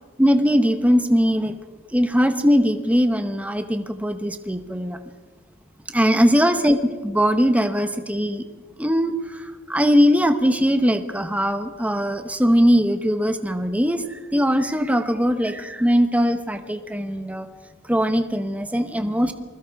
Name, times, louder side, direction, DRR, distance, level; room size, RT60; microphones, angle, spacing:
voice 1, 0.2-1.6 1.9-5.0 5.9-6.8 7.0-8.4 8.8-17.5 17.9-19.3, equal, 5° right, 8 dB, 1.1 m, -20 dB
28.0 x 21.5 x 4.8 m, 1.5 s
head